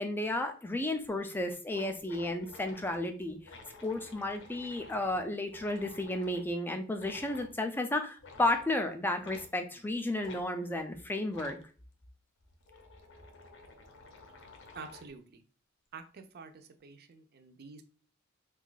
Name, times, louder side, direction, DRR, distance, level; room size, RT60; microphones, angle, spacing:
voice 1, 0.0-3.4 3.8-11.6, left 1 dB, 10° left, 6 dB, 0.4 m, -33 dB
sound 1, 1.0-1.1 1.4-1.5 1.7-6.5 7.0-7.5 8.2-8.7 9.2-9.5 10.2-10.4 11.3-11.6 12.4-15.2, left 3 dB, 60° left, 0.6 m, -52 dB
voice 2, 14.7-15.4 15.9-17.8, right 5 dB, 50° right, 8 dB, 0.5 m, -48 dB
2.7 x 2.3 x 3.8 m, 0.39 s
head